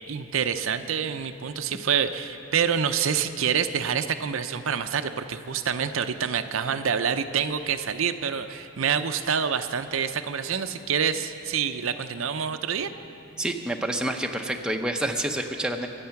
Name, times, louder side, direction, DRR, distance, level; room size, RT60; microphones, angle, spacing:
voice 1, 0.1-12.9, right 7 dB, 70° right, 9 dB, 0.6 m, -27 dB
voice 2, 13.4-15.9, right 1 dB, 5° right, 2 dB, 0.7 m, -28 dB
24.0 x 8.5 x 5.8 m, 2.7 s
head